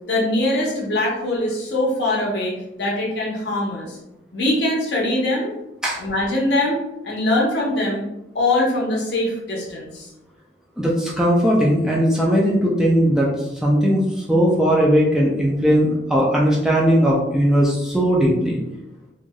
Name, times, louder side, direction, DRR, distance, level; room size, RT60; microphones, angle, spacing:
voice 1, 0.1-4.0 4.3-5.5 6.0-6.8 7.0-8.0 8.3-10.1, left 1 dB, 70° left, -3 dB, 0.8 m, -22 dB
voice 2, 10.8-13.3 13.6-14.0 14.3-18.6, equal, 5° right, -4 dB, 0.4 m, -18 dB
3.1 x 2.5 x 2.2 m, 0.93 s
head